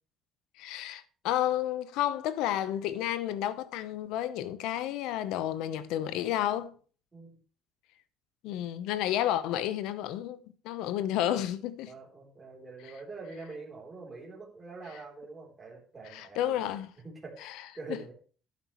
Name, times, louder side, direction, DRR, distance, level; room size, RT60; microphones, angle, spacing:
voice 1, 0.6-6.7 8.4-10.4 10.6-11.9 16.1-16.9 17.4-17.5 17.9-18.0, left 12 dB, 90° left, 0.9 m, -31 dB
voice 2, 11.9-16.6 17.0-18.1, right 3 dB, 20° right, 3.6 m, -45 dB
11.5 x 9.6 x 3.1 m
cardioid pair, 145°, 0 cm